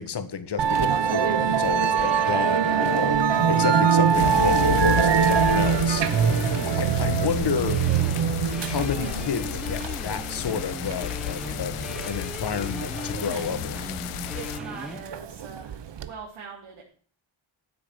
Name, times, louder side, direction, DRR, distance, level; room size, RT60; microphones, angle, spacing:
voice 1, 0.0-6.4 6.6-7.8 8.6-11.8 12.1-13.8, left 7 dB, 50° left, 11 dB, 1.6 m, -31 dB
Musical instrument, 0.6-16.1, right 7 dB, 55° right, 1.1 m, -24 dB
sound 1, 2.0-15.0, equal, ahead, 1.1 m, -39 dB
sound 2, 4.1-14.6, left 14 dB, 80° left, 0.7 m, -32 dB
voice 2, 14.3-16.8, right 6 dB, 85° right, -2 dB, 3.5 m, -42 dB
14.0 x 8.1 x 7.7 m, 0.43 s
wide cardioid pair, 140°, 50 cm